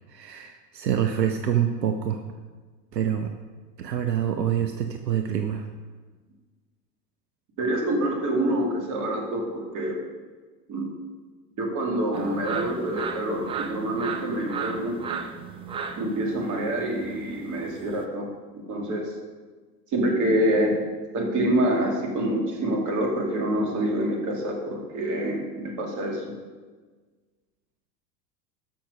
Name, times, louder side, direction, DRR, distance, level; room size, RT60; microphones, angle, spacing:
voice 1, 0.1-2.2 2.9-3.3 3.8-5.7, right 9 dB, 75° right, 6 dB, 0.8 m, -26 dB
voice 2, 7.6-10.0 10.7-10.9 11.6-15.0 16.0-18.3 18.5-19.1 19.9-20.8 21.1-26.3, right 1 dB, 35° right, 0 dB, 2.6 m, -26 dB
sound 1, 12.1-18.0, right 6 dB, 10° right, 0.4 m, -35 dB
13.0 x 6.0 x 5.2 m, 1.4 s
figure-of-eight pair, 85°, 50 cm